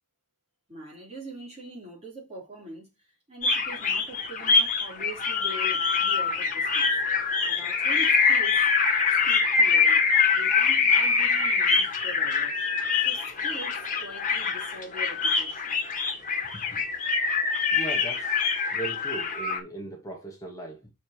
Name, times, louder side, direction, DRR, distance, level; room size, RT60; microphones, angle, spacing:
voice 1, 0.7-2.9 3.3-6.9 7.5-8.6 9.3-10.0 10.3-12.6 13.0-15.8 16.3-16.5, right 2 dB, 30° right, 3.6 m, -43 dB
sound 1, 3.4-19.6, left 5 dB, 35° left, 1.5 m, -24 dB
voice 2, 17.1-18.4 18.7-20.9, right 2 dB, 15° left, 1.2 m, -39 dB
6.2 x 4.2 x 4.8 m
head